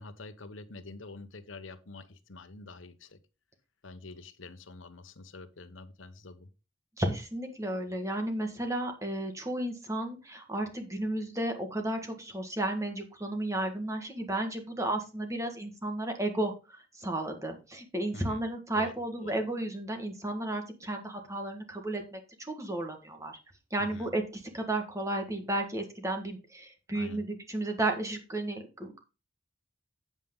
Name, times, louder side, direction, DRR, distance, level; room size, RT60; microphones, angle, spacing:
voice 1, 0.0-3.2 3.8-6.5 18.1-18.4 18.7-18.9 19.2-19.4 23.8-24.1 26.9-27.3, left 3 dB, 75° left, 1.0 m, -46 dB
voice 2, 7.0-23.4 23.7-29.0, right 1 dB, 15° right, 1.5 m, -33 dB
8.4 x 7.3 x 3.7 m
head